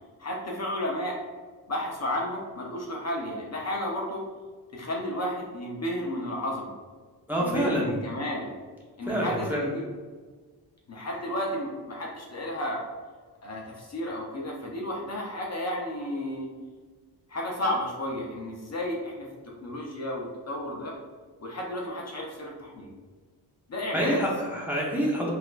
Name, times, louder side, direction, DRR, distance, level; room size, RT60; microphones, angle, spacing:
voice 1, 0.2-1.2 1.7-4.2 4.7-6.7 7.4-8.6 9.0-9.8 10.9-12.9 13.4-16.5 17.3-19.3 19.6-20.9 21.4-22.9 23.7-24.3, left 1 dB, 40° left, -2 dB, 0.6 m, -32 dB
voice 2, 7.3-8.0 9.1-9.6 23.9-25.3, equal, 5° right, -4 dB, 0.8 m, -27 dB
4.0 x 2.6 x 2.4 m, 1.4 s
cardioid pair, 90°, 41 cm